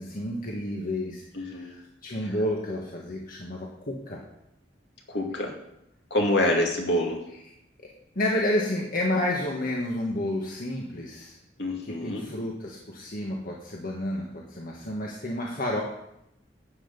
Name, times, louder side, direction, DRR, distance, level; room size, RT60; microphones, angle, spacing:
voice 1, 0.0-4.2 6.2-6.5 7.8-7.9 8.1-11.4 11.8-15.8, left 1 dB, 50° left, -2 dB, 1.6 m, -30 dB
voice 2, 1.3-1.7 5.1-5.5 6.1-7.2 11.6-12.3, left 1 dB, 65° left, 1 dB, 2.3 m, -26 dB
12.5 x 8.1 x 5.3 m, 0.81 s
head